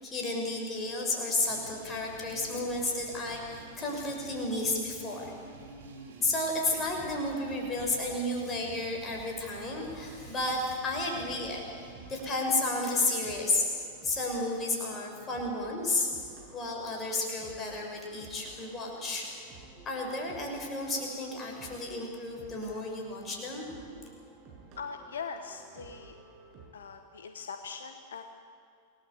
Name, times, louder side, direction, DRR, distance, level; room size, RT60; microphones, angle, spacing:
voice 1, 0.0-5.3 6.2-13.7 14.0-16.1 16.5-19.3 19.9-23.7, left 2 dB, 25° left, 0 dB, 7.0 m, -32 dB
sound 1, 1.4-12.2, right 3 dB, 65° right, 3.8 m, -49 dB
sound 2, 6.9-26.7, right 4 dB, 40° right, 7.2 m, -54 dB
voice 2, 24.8-26.1 26.7-28.2, left 5 dB, 65° left, 7 dB, 1.3 m, -41 dB
27.5 x 19.5 x 8.3 m, 2.4 s
figure-of-eight pair, 90°, 0 cm